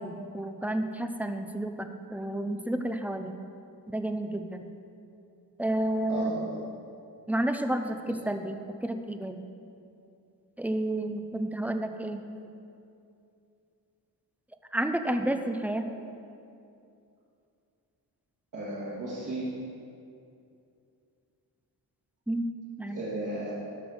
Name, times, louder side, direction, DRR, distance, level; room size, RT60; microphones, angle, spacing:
voice 1, 0.0-3.3 3.9-4.6 5.6-6.4 7.3-9.4 10.6-12.2 14.7-15.9 22.3-22.5 22.8-23.0, right 1 dB, 5° right, 7 dB, 0.4 m, -30 dB
voice 2, 6.1-6.5 8.1-8.2 18.5-19.5 22.9-23.7, right 1 dB, 55° right, -9 dB, 2.1 m, -35 dB
12.5 x 5.0 x 6.3 m, 2.6 s
wide cardioid pair, 150°, 40 cm